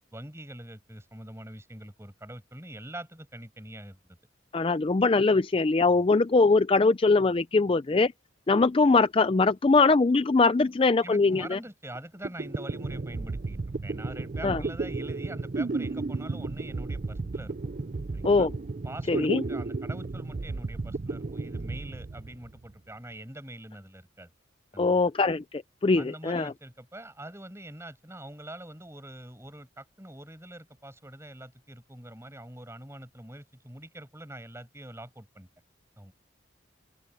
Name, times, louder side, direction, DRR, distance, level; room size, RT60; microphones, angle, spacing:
voice 1, 0.1-4.2 11.0-17.6 18.1-18.5 18.8-24.3 24.7-25.1 26.0-35.5 36.0-36.1, right 1 dB, 15° right, 7.7 m, -44 dB
voice 2, 4.5-8.1 8.5-11.6 14.4-14.6 18.2-18.5 19.1-19.4 24.8-26.5, left 3 dB, 30° left, 0.4 m, -22 dB
sound 1, 11.9-12.0 12.2-22.7, right 3 dB, 45° right, 0.5 m, -33 dB
open air
head